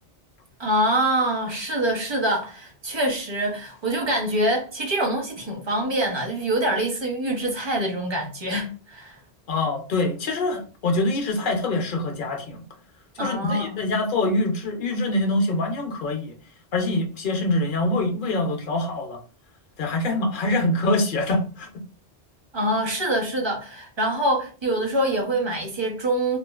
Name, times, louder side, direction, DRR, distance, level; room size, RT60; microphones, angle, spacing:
voice 1, 0.6-9.2 13.2-13.8 22.5-26.4, right 1 dB, 30° right, 0.6 m, -25 dB
voice 2, 9.5-12.6 13.2-16.3 16.7-19.2 19.8-21.7, left 2 dB, 60° left, 0.7 m, -24 dB
2.4 x 2.3 x 2.3 m
omnidirectional pair, 1.1 m